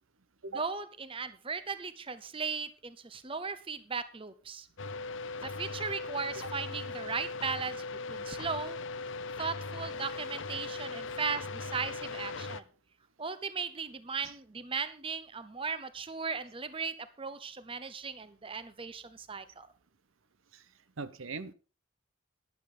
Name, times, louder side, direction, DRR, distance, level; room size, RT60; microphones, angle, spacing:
voice 1, 0.5-4.7 5.4-7.8 8.1-8.8 9.4-12.6 13.2-19.7, right 5 dB, 25° right, 0.8 m, -37 dB
sound 1, 4.8-12.6, left 3 dB, 65° left, 0.7 m, -39 dB
voice 2, 21.0-21.5, right 4 dB, 75° right, 0.8 m, -40 dB
12.0 x 10.5 x 3.8 m
head